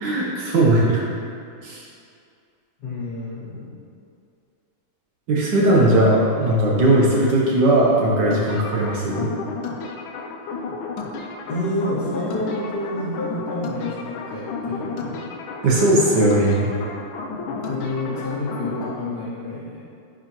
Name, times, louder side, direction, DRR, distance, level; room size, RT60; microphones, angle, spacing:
voice 1, 0.0-1.0 1.6-1.8 5.3-9.3 15.6-16.7, right 1 dB, 60° right, -4 dB, 1.4 m, -18 dB
voice 2, 2.8-3.7 11.5-15.2 17.3-19.8, left 1 dB, 50° left, -10 dB, 2.4 m, -29 dB
sound 1, 8.3-19.0, left 4 dB, 80° left, 1.4 m, -32 dB
9.9 x 4.8 x 3.0 m, 2.4 s
omnidirectional pair, 2.2 m